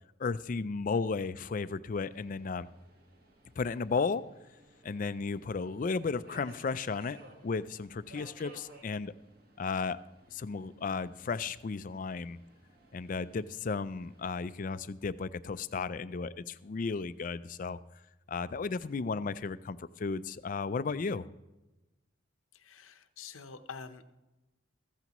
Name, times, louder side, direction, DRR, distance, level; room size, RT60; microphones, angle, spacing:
voice 1, 0.2-2.7 3.6-4.2 4.8-7.2 7.4-9.1 9.6-10.0 10.3-12.4 12.9-17.8 18.3-21.3, left 4 dB, 40° left, 15 dB, 0.4 m, -34 dB
Subway metro underground, 2.1-14.7, right 1 dB, 50° right, 1.5 m, -58 dB
voice 2, 22.5-24.1, left 5 dB, 85° left, 9 dB, 0.8 m, -47 dB
14.5 x 14.0 x 3.0 m, 1.0 s
head